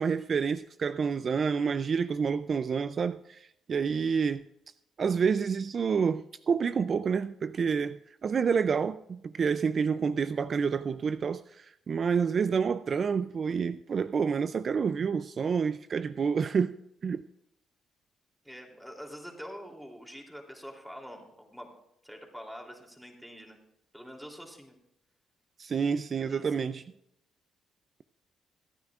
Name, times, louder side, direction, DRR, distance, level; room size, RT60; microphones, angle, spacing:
voice 1, 0.0-4.4 5.0-16.8 17.0-17.2 25.6-26.8, right 6 dB, 45° right, 0.4 m, -28 dB
voice 2, 18.4-21.7 22.0-23.6 23.9-24.8 26.2-26.5, equal, ahead, 3.0 m, -45 dB
25.5 x 9.5 x 2.4 m
cardioid pair, 90°, 0 cm